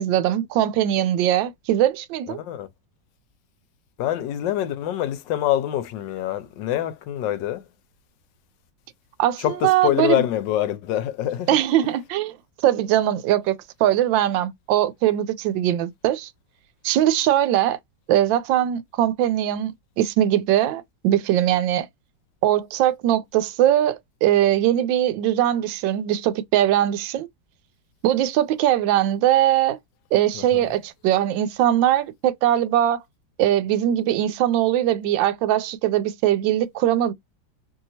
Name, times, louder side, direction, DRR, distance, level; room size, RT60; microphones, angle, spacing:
voice 1, 0.0-2.4 9.2-10.2 11.5-16.3 16.8-17.8 18.1-21.9 22.4-27.3 28.0-29.8 30.1-33.0 33.4-37.1, right 12 dB, 85° right, 1.3 m, -21 dB
voice 2, 2.3-2.7 4.0-7.7 9.4-11.5 30.3-30.7, left 12 dB, 80° left, 1.2 m, -25 dB
3.0 x 2.7 x 2.7 m
omnidirectional pair, 2.0 m